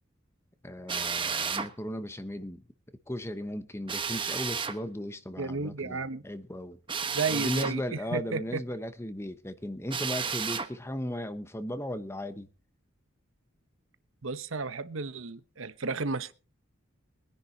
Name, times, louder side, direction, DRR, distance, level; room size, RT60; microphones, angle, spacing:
voice 1, 0.6-2.6 3.1-6.8 7.3-12.5, equal, 10° left, 0.9 m, -36 dB
Drill, 0.9-1.7 3.9-4.8 6.9-7.8 9.9-10.7, right 6 dB, 25° right, 1.1 m, -32 dB
voice 2, 5.4-6.2 7.1-8.6 14.2-16.3, right 4 dB, 70° right, 0.9 m, -33 dB
23.0 x 10.5 x 2.8 m
head